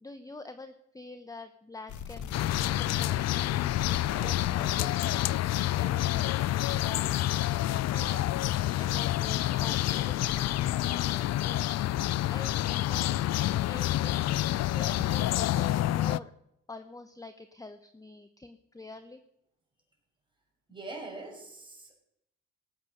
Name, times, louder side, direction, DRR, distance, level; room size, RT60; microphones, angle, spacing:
voice 1, 0.0-3.9 4.2-8.3 8.8-11.8 12.3-14.1 14.4-16.3 16.7-19.2, left 3 dB, 10° left, 10 dB, 0.9 m, -46 dB
sound 1, 1.9-8.2 8.4-10.5, left 8 dB, 75° left, 1.2 m, -41 dB
sound 2, 2.3-16.2, left 14 dB, 60° left, 0.4 m, -28 dB
voice 2, 20.7-21.9, right 2 dB, 15° right, 0 dB, 5.8 m, -42 dB
18.0 x 8.4 x 6.5 m, 0.82 s
cardioid pair, 90°, 30 cm